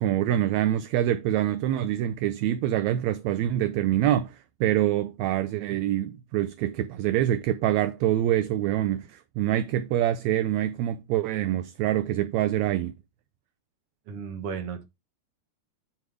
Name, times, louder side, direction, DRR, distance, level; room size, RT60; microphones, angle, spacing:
voice 1, 0.0-12.9, right 12 dB, 80° right, 1.7 m, -25 dB
voice 2, 14.1-14.8, right 6 dB, 55° right, 2.0 m, -34 dB
9.4 x 3.3 x 4.6 m
omnidirectional pair, 3.3 m